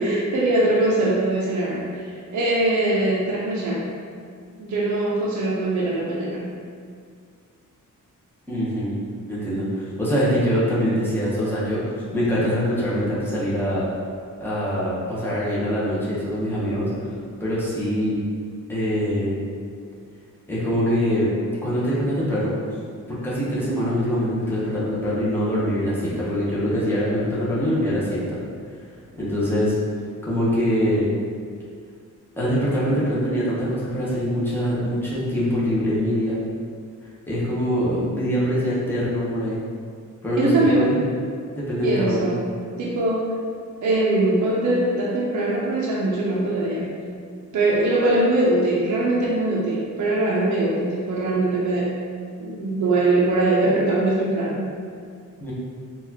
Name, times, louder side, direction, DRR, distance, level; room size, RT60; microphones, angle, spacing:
voice 1, 0.0-3.9 4.6-6.6 40.4-41.0 41.8-43.3 43.8-47.0 47.5-51.9 52.4-54.7, right 2 dB, 65° right, -5 dB, 0.5 m, -22 dB
voice 2, 8.5-8.9 9.3-13.8 14.4-16.9 17.4-18.1 18.7-19.4 20.5-21.3 21.6-22.5 23.1-28.4 29.2-29.7 30.2-31.1 32.4-36.4 37.3-39.6 40.2-41.0 41.6-42.3 55.4-55.5, equal, 5° left, -9 dB, 0.7 m, -23 dB
3.9 x 2.3 x 2.7 m, 2.1 s
wide cardioid pair, 175°, 32 cm